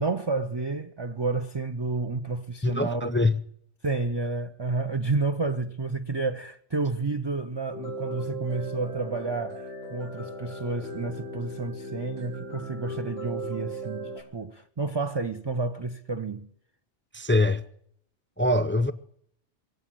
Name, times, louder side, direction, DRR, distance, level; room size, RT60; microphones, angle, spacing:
voice 1, 0.0-3.1 3.8-16.5, right 3 dB, 30° right, 0.5 m, -30 dB
voice 2, 2.6-3.4 17.1-17.6 18.4-18.9, left 2 dB, 20° left, 0.3 m, -23 dB
sound 1, 7.7-14.2, right 1 dB, 70° right, 4.6 m, -37 dB
22.0 x 8.1 x 7.6 m
omnidirectional pair, 1.3 m